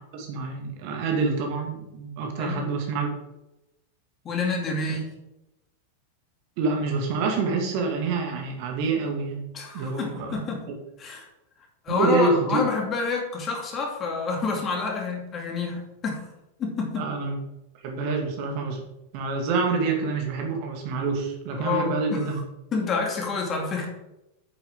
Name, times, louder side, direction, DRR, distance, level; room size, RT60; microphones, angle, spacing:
voice 1, 0.1-3.1 6.6-9.4 9.7-10.4 11.9-12.5 17.0-17.4 17.8-18.8 19.1-22.4, right 4 dB, 45° right, 2 dB, 2.1 m, -27 dB
voice 2, 2.4-2.7 4.2-5.2 9.5-10.6 11.0-11.3 11.8-16.2 16.6-17.1 21.5-22.3 22.7-23.9, left 4 dB, 25° left, 0 dB, 2.6 m, -28 dB
9.1 x 8.1 x 3.7 m, 0.92 s
figure-of-eight pair, 90°, 0 cm